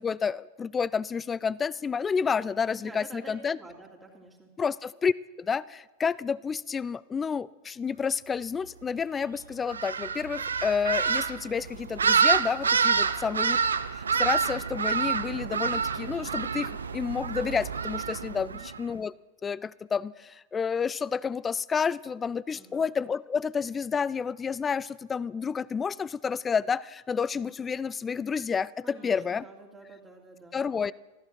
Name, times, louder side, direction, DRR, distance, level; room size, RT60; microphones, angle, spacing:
voice 1, 0.0-3.6 4.6-13.6 13.9-19.1 19.4-29.4 30.5-30.9, left 6 dB, 20° left, 21 dB, 0.3 m, -30 dB
voice 2, 2.7-4.5 13.0-13.2 18.3-18.6 22.5-22.8 28.8-30.6, right 2 dB, 10° right, -1 dB, 2.7 m, -49 dB
sound 1, 9.7-18.8, right 6 dB, 70° right, 0.5 m, -27 dB
14.0 x 13.5 x 4.5 m, 1.1 s
figure-of-eight pair, 90°, 0 cm